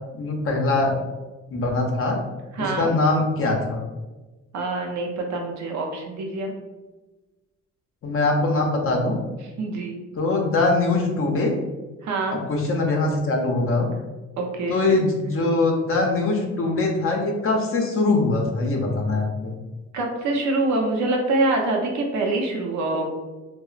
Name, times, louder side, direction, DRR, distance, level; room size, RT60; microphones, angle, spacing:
voice 1, 0.1-0.9 1.5-2.2 2.6-3.8 8.0-9.2 10.2-11.5 12.5-13.9 14.7-19.5, left 2 dB, 45° left, 1 dB, 0.6 m, -22 dB
voice 2, 2.5-2.9 4.5-6.5 9.6-10.0 12.0-12.4 14.4-14.8 19.9-23.1, right 2 dB, 70° right, 1 dB, 0.6 m, -25 dB
2.8 x 2.0 x 2.4 m, 1.2 s
cardioid pair, 90°, 30 cm